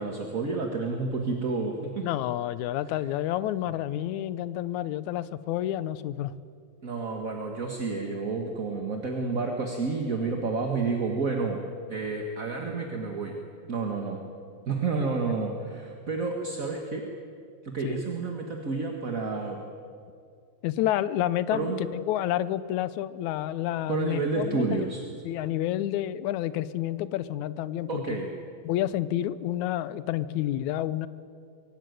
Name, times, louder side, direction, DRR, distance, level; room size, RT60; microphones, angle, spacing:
voice 1, 0.0-2.0 6.8-11.6 11.9-13.4 13.7-14.2 14.7-17.0 17.6-19.6 21.5-21.8 23.9-25.1 27.9-28.3, right 4 dB, 35° right, 2 dB, 1.5 m, -30 dB
voice 2, 2.0-6.3 15.2-15.3 17.8-18.0 20.6-24.9 25.2-28.2 28.6-31.1, left 13 dB, 85° left, 16 dB, 2.1 m, -29 dB
24.0 x 17.0 x 9.4 m, 2.3 s
omnidirectional pair, 3.3 m